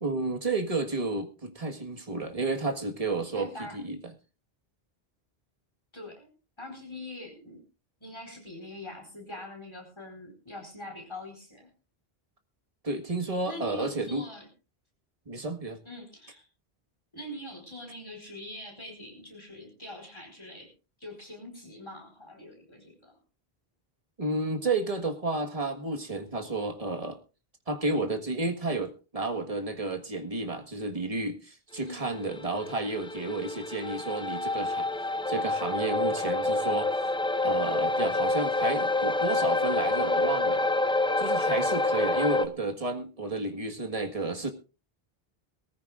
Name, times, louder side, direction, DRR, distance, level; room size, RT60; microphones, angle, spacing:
voice 1, 0.0-4.1 12.8-14.2 15.3-15.8 24.2-27.2 27.7-34.9 35.3-36.9 37.4-40.7 41.2-44.5, right 2 dB, 35° right, 5 dB, 1.7 m, -31 dB
voice 2, 3.3-3.8 5.9-6.3 6.6-7.6 8.0-11.7 13.4-14.5 15.8-16.4 17.1-20.7 21.0-23.1 31.9-32.4, left 1 dB, 25° left, 2 dB, 4.7 m, -43 dB
sound 1, 32.1-42.5, left 2 dB, 10° left, 0.3 m, -27 dB
21.5 x 14.5 x 2.5 m, 0.33 s
omnidirectional pair, 1.0 m